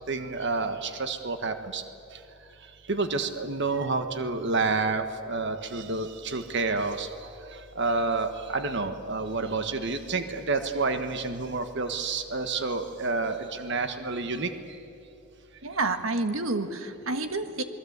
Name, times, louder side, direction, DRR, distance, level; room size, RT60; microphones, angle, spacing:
voice 1, 0.1-1.8 2.9-7.1 7.7-14.5, right 3 dB, 55° right, 8 dB, 1.5 m, -29 dB
voice 2, 15.6-17.6, right 3 dB, 70° right, 8 dB, 1.6 m, -29 dB
28.0 x 21.0 x 8.2 m, 2.7 s
head